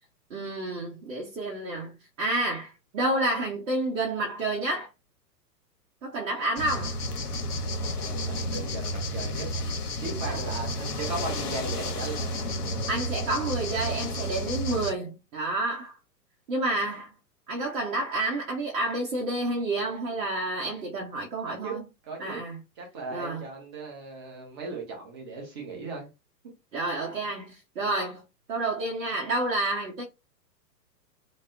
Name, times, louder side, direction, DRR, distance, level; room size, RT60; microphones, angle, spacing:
voice 1, 0.3-1.9 2.2-4.9 6.0-7.0 10.2-10.4 12.9-16.0 16.5-17.1 17.5-21.8 22.2-22.6 23.1-23.4 26.7-28.2 28.5-30.0, right 2 dB, 55° right, 0.8 m, -29 dB
sound 1, 6.6-14.9, left 1 dB, 70° left, 0.7 m, -31 dB
voice 2, 8.0-9.5 10.0-12.5 21.5-22.4 22.8-26.1, right 3 dB, 15° right, 0.5 m, -37 dB
2.2 x 2.0 x 3.4 m
figure-of-eight pair, 110°, 49 cm